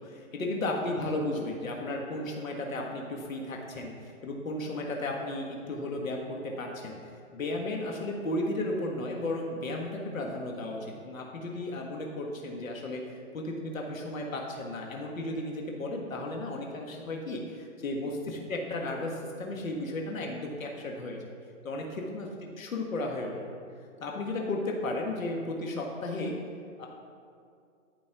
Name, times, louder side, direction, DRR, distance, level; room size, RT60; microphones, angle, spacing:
voice 1, 0.0-21.2 21.6-22.3 22.6-23.6 24.0-26.4 26.8-26.9, left 2 dB, 90° left, 0 dB, 1.6 m, -34 dB
12.0 x 5.4 x 5.9 m, 2.4 s
hypercardioid pair, 155°, 39 cm